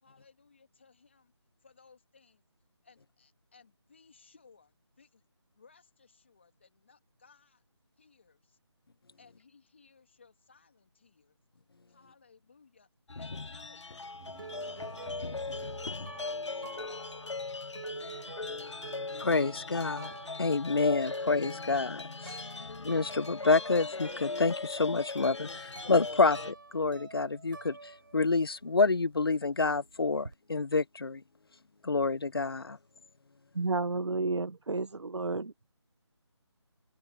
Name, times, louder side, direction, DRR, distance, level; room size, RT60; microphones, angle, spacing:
voice 1, 0.0-1.3 1.6-2.4 2.8-5.2 5.5-7.6 8.0-8.6 9.2-11.4 11.9-12.9 13.2-13.9 15.2-15.6 16.1-17.5 18.0-18.8, left 5 dB, 25° left, 2.8 m, -61 dB
sound 1, 13.1-26.5, left 3 dB, 80° left, 1.0 m, -39 dB
sound 2, 13.9-28.6 28.9-30.3, right 3 dB, 45° right, 4.6 m, -49 dB
sound 3, 14.2-21.2, right 9 dB, 10° right, 3.1 m, -61 dB
voice 2, 19.2-20.1 20.4-22.4 22.8-31.2 31.8-32.8, left 3 dB, 55° left, 0.6 m, -28 dB
voice 3, 33.5-35.5, right 3 dB, 75° right, 0.9 m, -31 dB
open air
figure-of-eight pair, 180°, 15 cm